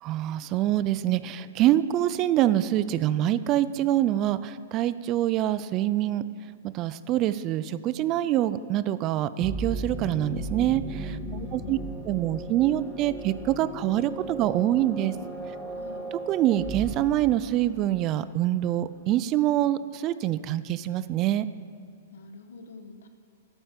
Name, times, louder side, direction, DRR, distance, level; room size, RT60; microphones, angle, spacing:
voice 1, 0.0-6.2 6.7-11.2 11.5-11.8 12.1-15.1 16.3-21.5, right 13 dB, 30° right, 15 dB, 0.3 m, -25 dB
sound 1, 9.4-18.0, right 2 dB, ahead, 0.7 m, -36 dB
voice 2, 11.2-12.0 15.7-16.1 22.1-23.1, left 5 dB, 75° left, 8 dB, 1.1 m, -44 dB
12.5 x 8.6 x 5.2 m, 2.1 s
hypercardioid pair, 155°, 0 cm